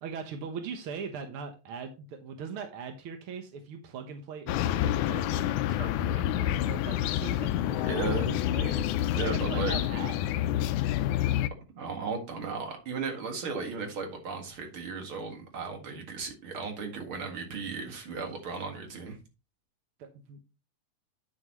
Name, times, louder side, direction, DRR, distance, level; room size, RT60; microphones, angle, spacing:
voice 1, 0.0-10.6 15.8-16.1 20.0-20.4, right 6 dB, 70° right, 6 dB, 1.3 m, -41 dB
sound 1, 4.5-11.5, left 12 dB, 80° left, 1.8 m, -28 dB
voice 2, 7.8-8.4 9.1-9.8 11.7-19.2, right 4 dB, 45° right, 3 dB, 2.3 m, -35 dB
9.6 x 7.1 x 3.0 m, 0.29 s
omnidirectional pair, 3.9 m